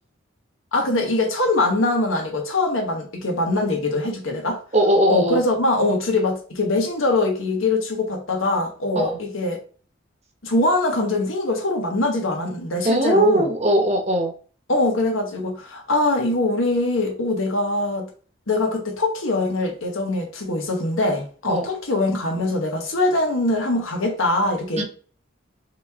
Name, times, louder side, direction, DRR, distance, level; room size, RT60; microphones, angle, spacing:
voice 1, 0.7-4.6 5.1-9.6 10.4-13.4 14.7-18.1 18.5-24.8, left 2 dB, 85° left, 1.3 m, -22 dB
voice 2, 4.7-5.4 8.9-9.2 12.8-14.3 21.5-21.7 24.8-24.9, right 1 dB, 35° right, 1.0 m, -19 dB
4.3 x 3.0 x 3.6 m
head